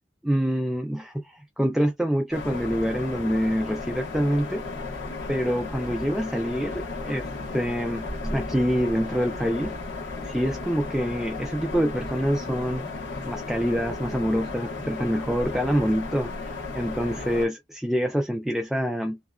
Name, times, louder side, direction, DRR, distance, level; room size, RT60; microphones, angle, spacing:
voice 1, 0.2-4.6 5.3-9.8 10.2-12.8 13.2-19.2, equal, ahead, 0.3 m, -26 dB
sound 1, 2.3-17.5, left 3 dB, 80° left, 1.1 m, -34 dB
2.9 x 2.4 x 2.2 m
head